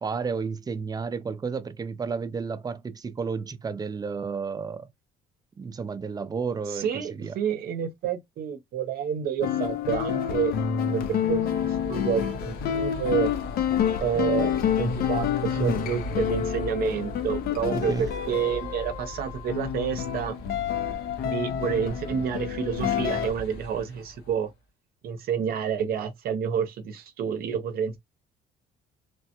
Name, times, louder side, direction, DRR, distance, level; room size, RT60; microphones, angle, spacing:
voice 1, 0.0-4.9 5.6-7.4 15.6-15.8 17.7-18.1, right 5 dB, 25° right, 0.4 m, -32 dB
voice 2, 6.7-10.5 10.9-13.3 14.0-20.3 21.2-24.5 25.0-28.0, right 8 dB, 65° right, 0.7 m, -29 dB
sound 1, 9.4-23.3, left 9 dB, 65° left, 0.5 m, -28 dB
sound 2, 11.1-24.5, equal, 85° left, 1.2 m, -40 dB
3.2 x 2.1 x 2.8 m
cardioid pair, 110°, 17 cm